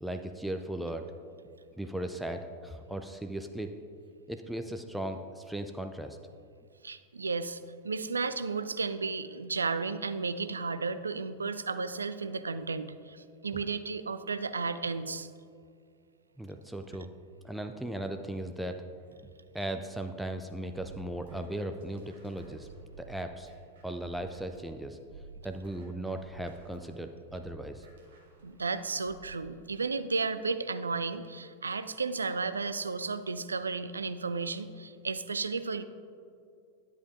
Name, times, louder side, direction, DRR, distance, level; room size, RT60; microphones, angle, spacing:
voice 1, 0.0-1.1 1.7-3.7 4.3-6.2 16.4-17.1 17.4-18.8 19.5-22.7 23.0-23.5 23.8-25.0 25.4-27.9, right 1 dB, ahead, 6 dB, 0.4 m, -37 dB
voice 2, 6.8-15.3 28.4-35.8, right 4 dB, 75° right, 12 dB, 0.3 m, -33 dB
sound 1, 20.7-24.7 25.1-29.5, right 4 dB, 60° right, 1.4 m, -53 dB
11.0 x 7.5 x 2.5 m, 2.3 s
figure-of-eight pair, 90°, 0 cm